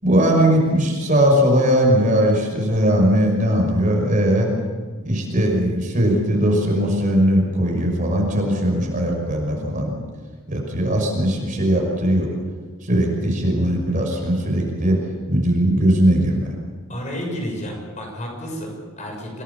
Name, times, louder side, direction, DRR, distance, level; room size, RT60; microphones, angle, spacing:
voice 1, 0.0-4.5 5.0-9.9 10.5-12.3 12.8-15.0 15.3-16.5, equal, 35° right, 1 dB, 5.8 m, -19 dB
voice 2, 16.9-19.4, equal, 35° left, 1 dB, 6.5 m, -31 dB
27.0 x 19.0 x 7.1 m, 1.5 s
head